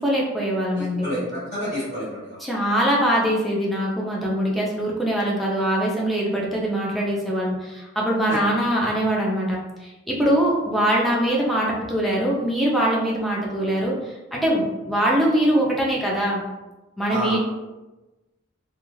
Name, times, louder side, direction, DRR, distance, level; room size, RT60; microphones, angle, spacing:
voice 1, 0.0-1.1 2.4-16.4 17.0-17.4, right 1 dB, ahead, -4 dB, 0.4 m, -23 dB
voice 2, 0.7-2.4 8.3-8.4 17.1-17.4, equal, 35° left, -12 dB, 1.2 m, -29 dB
2.3 x 2.3 x 3.1 m, 1.1 s
head